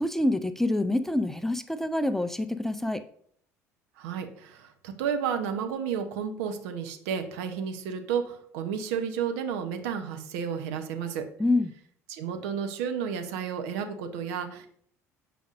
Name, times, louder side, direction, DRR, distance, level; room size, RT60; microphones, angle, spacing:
voice 1, 0.0-3.0 11.4-11.7, left 1 dB, 5° left, 10 dB, 0.4 m, -26 dB
voice 2, 4.0-11.3 12.1-14.7, right 7 dB, 70° right, 6 dB, 0.8 m, -32 dB
7.5 x 5.2 x 2.5 m, 0.63 s
hypercardioid pair, 65°, 8 cm